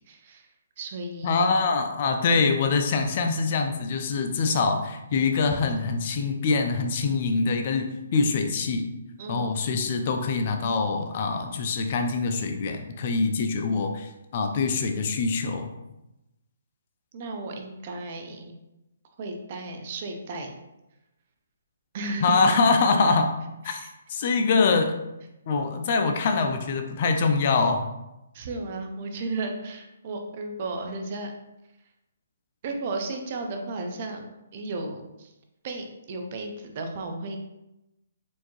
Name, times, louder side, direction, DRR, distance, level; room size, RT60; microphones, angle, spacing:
voice 1, 0.1-0.5 0.8-1.6 9.2-9.6 17.1-18.5 19.2-20.5 21.9-22.4 23.7-23.9 26.2-26.3 28.3-31.3 32.6-35.3 35.6-37.4, right 2 dB, 35° right, 4 dB, 0.5 m, -34 dB
voice 2, 1.2-8.9 9.3-15.7 22.2-23.3 23.6-23.8 24.1-24.9 25.5-27.9, left 4 dB, 40° left, 5 dB, 0.4 m, -24 dB
4.4 x 2.7 x 3.0 m, 0.93 s
hypercardioid pair, 160°, 0 cm